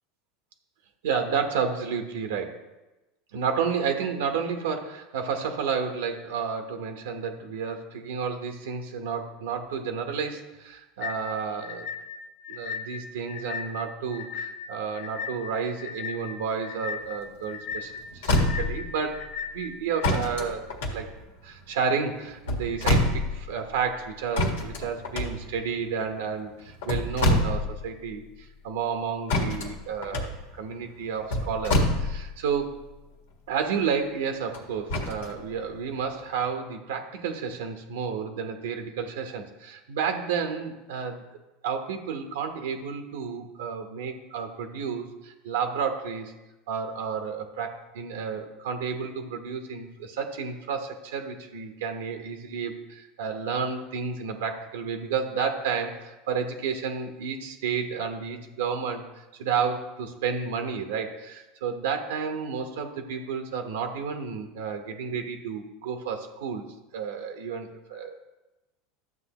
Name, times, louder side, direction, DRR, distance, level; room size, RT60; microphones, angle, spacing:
voice 1, 1.0-2.6 3.3-11.9 12.5-19.2 19.5-21.1 21.4-32.7 33.5-41.2 41.6-46.3 46.7-66.6 66.9-68.3, right 6 dB, 80° right, 5 dB, 1.0 m, -31 dB
sound 1, 11.0-20.1, left 7 dB, 50° left, 0.5 m, -37 dB
sound 2, 17.7-17.8 18.1-18.9 20.0-21.6 22.3-23.5 24.3-25.8 26.6-27.9 28.2-28.3 29.3-32.5 34.5-35.3 36.0-36.1, left 1 dB, 80° left, 1.6 m, -26 dB
12.0 x 7.6 x 3.0 m, 1.0 s
hypercardioid pair, 100°, 0 cm